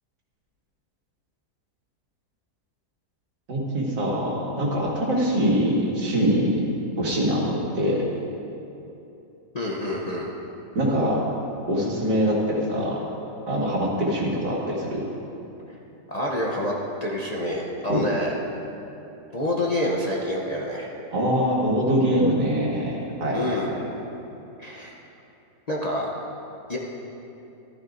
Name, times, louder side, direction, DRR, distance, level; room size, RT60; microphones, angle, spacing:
voice 1, 3.5-6.6 7.0-8.0 10.8-11.2 11.7-13.0 13.5-15.0 17.9-18.1 21.1-23.7, equal, 85° right, -4 dB, 2.5 m, -23 dB
voice 2, 9.5-10.3 16.1-16.7 17.0-18.4 19.3-20.9 23.3-23.7 24.6-24.9 25.7-26.1 26.7-26.8, left 1 dB, 35° left, -4 dB, 0.7 m, -27 dB
14.5 x 12.5 x 2.6 m, 2.9 s
omnidirectional pair, 1.8 m